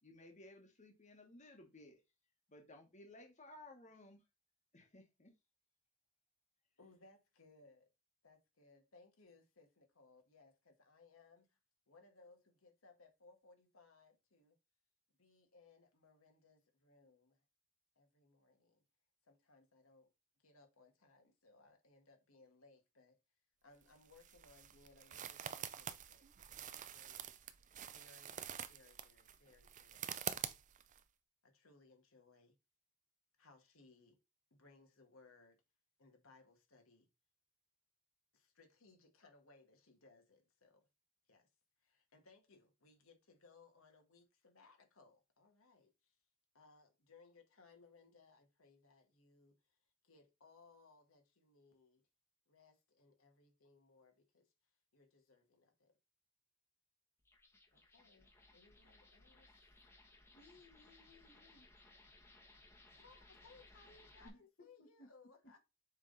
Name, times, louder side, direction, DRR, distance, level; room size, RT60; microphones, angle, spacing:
voice 1, 0.0-2.0 2.5-4.2 4.7-5.3, left 2 dB, 35° left, 1.5 m, -58 dB
voice 2, 6.8-7.9 8.2-11.6 11.9-14.6 15.2-17.4 17.9-18.8 19.2-20.1 20.4-23.2 23.6-27.4 27.9-30.5 31.4-32.6 33.4-34.2 34.5-35.6 36.0-37.1 38.3-40.9 41.3-41.5 41.8-46.2 46.5-49.8 50.0-52.1 52.5-54.5 54.9-56.0 57.7-59.5 62.9-65.6, left 3 dB, 80° left, 1.7 m, -66 dB
sound 1, 23.8-31.0, right 9 dB, 40° right, 0.5 m, -47 dB
sound 2, 57.2-64.3, left 2 dB, 10° left, 1.3 m, -64 dB
voice 3, 60.3-61.7 62.9-63.0 64.2-65.1, left 2 dB, 55° left, 1.4 m, -63 dB
7.4 x 3.6 x 4.0 m
head